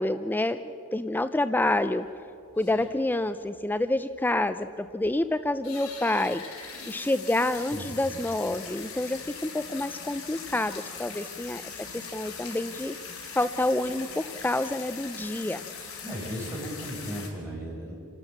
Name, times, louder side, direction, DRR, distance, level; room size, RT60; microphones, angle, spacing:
voice 1, 0.0-2.1 2.5-6.4 6.9-13.0 13.3-15.6, left 1 dB, 10° left, 11 dB, 0.4 m, -28 dB
sound 1, 1.6-1.7 2.0-2.1 2.5-3.2 3.6-3.7 3.8-3.9 4.3-4.4 4.9-5.2 5.5-17.3, left 5 dB, 70° left, 4.5 m, -41 dB
voice 2, 7.5-7.9 16.0-17.9, equal, 10° right, -4 dB, 6.5 m, -36 dB
28.0 x 13.0 x 7.9 m, 2.8 s
head